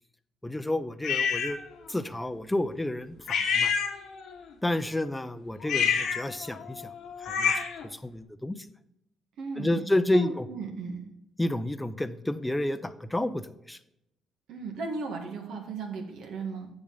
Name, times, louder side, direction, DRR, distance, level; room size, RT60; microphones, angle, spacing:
voice 1, 0.4-1.6 1.9-3.7 4.6-6.9 7.2-7.5 7.8-8.7 9.6-10.5 11.4-13.8, left 1 dB, 10° left, 10 dB, 0.5 m, -30 dB
sound 1, 1.0-1.6 3.3-4.3 5.6-7.9, left 7 dB, 75° left, 1.1 m, -28 dB
voice 2, 9.4-9.8 10.1-11.0 14.5-16.7, right 4 dB, 80° right, 3 dB, 1.8 m, -36 dB
7.8 x 7.1 x 3.9 m, 0.81 s
cardioid pair, 90°, 0 cm